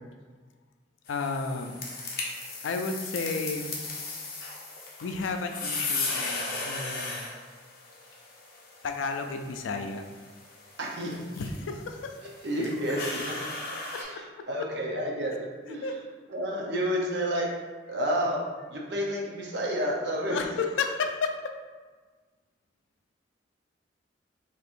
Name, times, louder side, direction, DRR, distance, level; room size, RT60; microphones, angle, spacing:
voice 1, 1.1-1.7 2.6-3.8 5.0-7.3 8.8-10.0 11.4-12.2 15.8-16.0 20.3-21.4, left 4 dB, 90° left, 5 dB, 0.4 m, -32 dB
sound 1, 1.1-14.0, left 3 dB, 50° left, 0.7 m, -37 dB
voice 2, 10.8-11.2 12.2-13.3 14.0-16.0 16.3-17.5 17.9-18.4 18.7-20.4, equal, 65° right, -2 dB, 0.7 m, -30 dB
4.4 x 2.9 x 2.6 m, 1.4 s
head